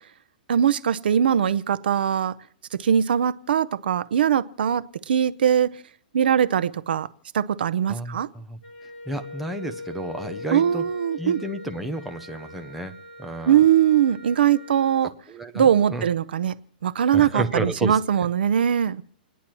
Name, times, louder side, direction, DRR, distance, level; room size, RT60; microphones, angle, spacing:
voice 1, 0.5-2.3 2.7-5.7 6.1-7.1 7.3-8.3 10.5-11.4 13.5-15.1 15.5-16.5 16.8-19.0, right 9 dB, 80° right, 15 dB, 0.6 m, -21 dB
voice 2, 7.9-8.6 9.1-10.8 11.2-12.9 13.2-13.6 15.3-16.0 17.1-18.0, right 1 dB, ahead, 4 dB, 0.6 m, -31 dB
Wind instrument woodwind instrument, 8.6-15.1, left 2 dB, 40° left, 3.9 m, -40 dB
29.5 x 10.0 x 3.0 m, 0.63 s
hypercardioid pair, 175°, 5 cm